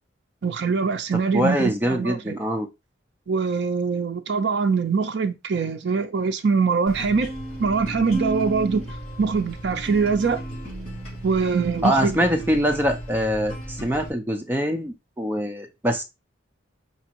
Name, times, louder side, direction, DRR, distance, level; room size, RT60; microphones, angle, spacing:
voice 1, 0.4-2.4 3.3-7.3 7.6-8.9 9.2-10.4 11.2-12.2, right 5 dB, 60° right, 0.4 m, -23 dB
voice 2, 1.1-2.7 11.8-16.0, equal, 10° right, 0.6 m, -24 dB
sound 1, 6.9-14.1, right 1 dB, 35° left, 2.8 m, -34 dB
5.1 x 2.8 x 2.9 m
head